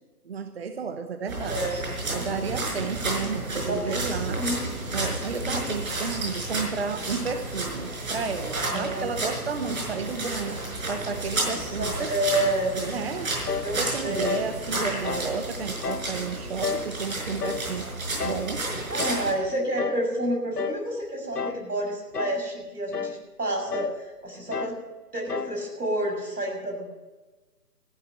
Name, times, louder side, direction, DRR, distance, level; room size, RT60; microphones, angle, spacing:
voice 1, 0.3-1.7 2.1-4.5 4.9-10.6 10.9-12.1 12.8-13.3 13.8-17.9 18.2-18.8, right 5 dB, 40° right, 8 dB, 0.9 m, -32 dB
sound 1, 1.3-19.3, right 2 dB, 60° right, 5.8 m, -32 dB
voice 2, 1.4-2.5 3.7-4.7 5.3-5.6 8.7-9.1 11.5-12.7 13.6-14.4 18.9-24.8 25.1-26.9, right 1 dB, 85° right, 2 dB, 6.0 m, -30 dB
sound 2, 13.5-13.8 14.2-14.5 15.0-15.3 15.8-16.1 16.6-16.9 17.4-17.7 18.2-18.5 19.0-19.3 19.8-20.1 20.6-20.9 21.4-21.7 22.1-22.5 22.9-23.2 23.7-24.0 24.5-24.8 25.3-25.6, left 6 dB, 90° left, 0.8 m, -31 dB
14.5 x 11.0 x 6.6 m, 1.2 s
figure-of-eight pair, 150°, 46 cm